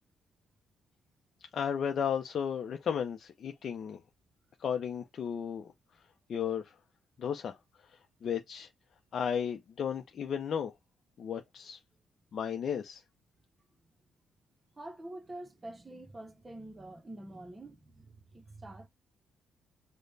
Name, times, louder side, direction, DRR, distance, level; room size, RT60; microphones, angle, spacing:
voice 1, 1.5-4.0 4.6-5.7 6.3-6.6 7.2-7.6 8.2-8.7 9.1-10.7 11.2-11.8 12.3-13.0, left 7 dB, 55° left, 0.5 m, -34 dB
voice 2, 14.8-18.9, right 1 dB, 25° right, 0.7 m, -46 dB
5.0 x 2.1 x 2.6 m
cardioid pair, 90°, 0 cm